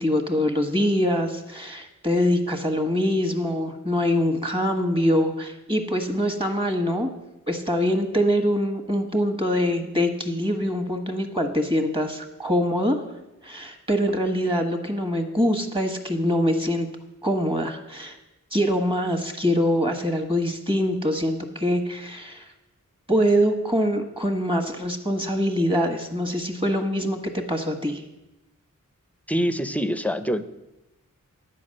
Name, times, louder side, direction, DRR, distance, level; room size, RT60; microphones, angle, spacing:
voice 1, 0.0-7.1 7.5-13.0 13.4-16.9 17.2-18.2 18.5-22.5 23.1-28.0, equal, 15° right, 5 dB, 1.4 m, -24 dB
voice 2, 29.3-30.5, equal, 5° left, 11 dB, 0.6 m, -25 dB
10.5 x 5.2 x 7.6 m, 0.97 s
wide cardioid pair, 55°, 32 cm